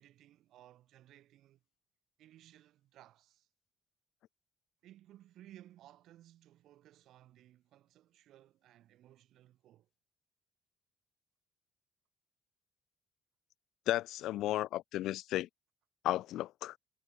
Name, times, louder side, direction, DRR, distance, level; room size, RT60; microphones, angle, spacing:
voice 1, 0.0-1.6 2.2-3.5 4.8-9.9, right 13 dB, 70° right, 5.8 m, -59 dB
voice 2, 13.9-15.5 16.0-16.8, left 14 dB, 80° left, 0.4 m, -34 dB
cardioid pair, 170°, 0 cm